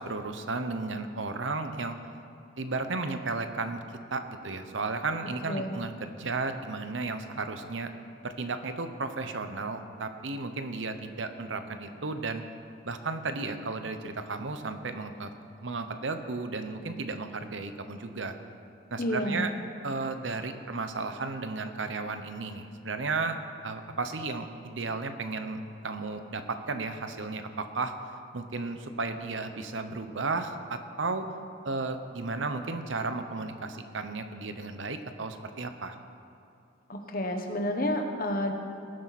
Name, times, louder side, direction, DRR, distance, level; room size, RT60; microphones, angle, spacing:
voice 1, 0.0-2.0 2.6-3.8 4.1-7.9 8.2-12.4 12.8-15.3 15.6-18.3 18.9-19.5 19.8-23.4 23.6-27.9 28.3-31.3 31.6-36.0, right 3 dB, 75° right, 8 dB, 0.9 m, -34 dB
voice 2, 19.0-19.4 36.9-38.5, left 1 dB, 50° left, 4 dB, 1.3 m, -30 dB
19.0 x 11.0 x 4.2 m, 2.7 s
head